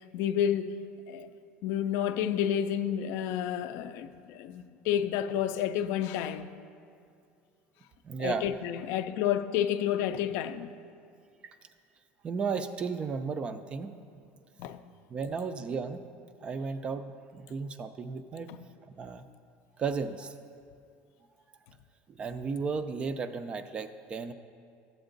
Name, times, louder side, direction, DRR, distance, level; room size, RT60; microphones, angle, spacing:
voice 1, 0.1-0.8 1.1-1.3 1.6-6.5 8.2-10.7 14.6-14.8, left 10 dB, 55° left, 0.4 m, -30 dB
voice 2, 8.0-8.5 11.4-11.5 12.2-13.9 15.1-16.0 16.4-18.5 19.0-19.2 19.8-20.4 22.1-24.3, right 5 dB, 20° right, 0.3 m, -34 dB
13.0 x 7.9 x 3.9 m
cardioid pair, 180°, 5 cm